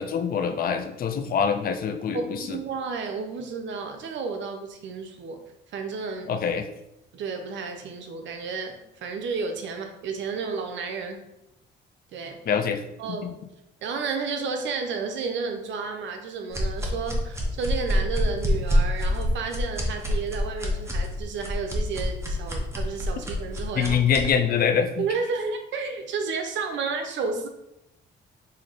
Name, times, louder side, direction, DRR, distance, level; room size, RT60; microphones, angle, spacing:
voice 1, 0.0-2.6 6.3-6.7 12.5-12.8 13.1-13.3 23.8-25.1, left 7 dB, 50° left, 7 dB, 0.4 m, -25 dB
voice 2, 2.1-5.4 5.7-6.3 7.1-11.2 12.1-12.4 13.0-13.3 13.8-24.0 25.0-27.5, right 5 dB, 70° right, 5 dB, 0.6 m, -32 dB
sound 1, 16.5-24.3, left 1 dB, 15° right, 0.8 m, -26 dB
3.2 x 2.7 x 3.9 m, 0.85 s
cardioid pair, 90°, 20 cm